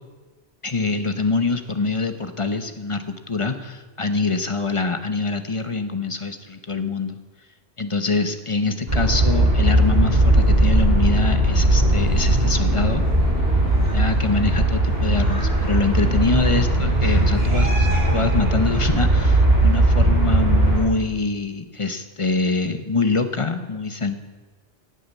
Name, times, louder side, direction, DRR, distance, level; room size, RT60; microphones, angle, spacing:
voice 1, 0.6-7.2 7.8-13.0 13.9-24.1, left 3 dB, 30° left, 9 dB, 0.9 m, -25 dB
sound 1, 8.9-20.8, right 1 dB, 60° right, 4.3 m, -18 dB
17.5 x 8.7 x 7.1 m, 1.3 s
omnidirectional pair, 1.1 m